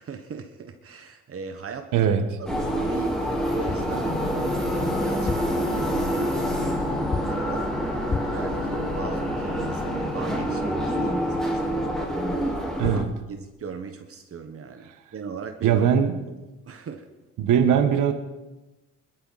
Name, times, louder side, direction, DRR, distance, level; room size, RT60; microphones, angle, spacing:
voice 1, 0.0-2.1 2.4-11.9 12.4-13.0 13.3-15.9 16.6-17.1, right 6 dB, 50° right, 6 dB, 1.4 m, -38 dB
voice 2, 1.9-2.2 12.8-13.1 15.6-16.1 17.4-18.1, right 8 dB, 85° right, 7 dB, 1.4 m, -20 dB
sound 1, 2.5-13.0, equal, ahead, 3.6 m, -27 dB
sound 2, 3.7-4.0 5.1-5.7 7.1-7.5 8.1-8.5 12.5-12.6 12.8-13.2, left 4 dB, 20° left, 0.7 m, -31 dB
sound 3, 3.9-11.9, left 3 dB, 75° left, 4.9 m, -36 dB
21.0 x 12.5 x 4.2 m, 1.1 s
cardioid pair, 90°, 30 cm